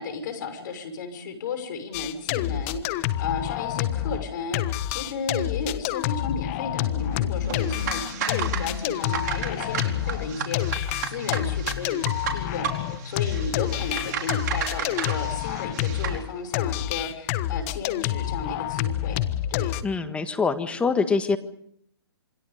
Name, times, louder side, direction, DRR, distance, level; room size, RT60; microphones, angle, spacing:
voice 1, 0.0-19.2 19.5-19.8, left 4 dB, 45° left, 9 dB, 6.2 m, -34 dB
sound 1, 1.9-4.3 4.5-16.2 16.5-19.8, left 13 dB, 30° left, 1.4 m, -28 dB
sound 2, 6.0-16.3, left 5 dB, 75° left, 2.5 m, -40 dB
sound 3, 7.4-16.2, right 8 dB, 40° right, 4.5 m, -34 dB
voice 2, 19.8-21.4, left 4 dB, 10° left, 9 dB, 1.6 m, -24 dB
28.0 x 24.0 x 5.2 m, 0.67 s
hypercardioid pair, 135°, 14 cm